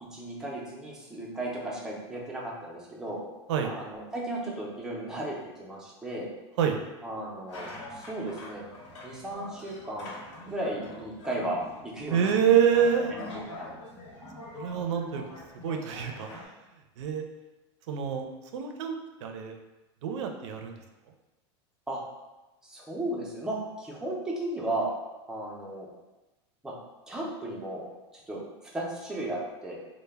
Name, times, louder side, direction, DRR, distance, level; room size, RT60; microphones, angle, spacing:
voice 1, 0.0-3.2 3.6-6.3 7.0-8.6 9.0-10.1 10.5-11.6 11.8-12.3 13.1-13.7 21.9-22.0 22.6-25.0 25.3-25.9 26.6-26.7 27.1-27.9 28.3-28.4 28.7-29.8, right 1 dB, 5° right, -4 dB, 0.4 m, -35 dB
sound 1, 7.5-16.5, left 2 dB, 85° left, 0.8 m, -44 dB
voice 2, 12.1-13.1 14.5-15.2 15.6-16.5 17.0-17.2 17.9-18.3 18.5-18.9 19.2-19.6 20.0-20.8, right 8 dB, 85° right, 4 dB, 0.4 m, -26 dB
2.1 x 2.0 x 3.3 m, 1.1 s
supercardioid pair, 150°, 15 cm